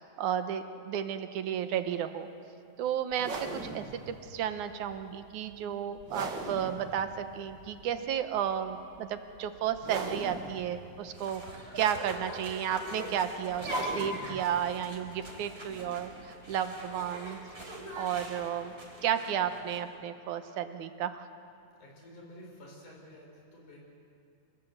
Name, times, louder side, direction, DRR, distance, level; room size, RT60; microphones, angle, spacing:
voice 1, 0.0-2.3 2.8-3.3 3.6-11.4 11.8-17.4 17.9-18.7 19.0-21.3, right 9 dB, 75° right, 9 dB, 2.4 m, -33 dB
sound 1, 3.1-18.4, right 3 dB, 40° right, 1.9 m, -43 dB
sound 2, 11.1-19.8, equal, 20° right, 3.9 m, -42 dB
voice 2, 21.8-23.8, left 1 dB, 70° left, -1 dB, 6.4 m, -51 dB
27.0 x 19.5 x 8.0 m, 2.5 s
omnidirectional pair, 3.6 m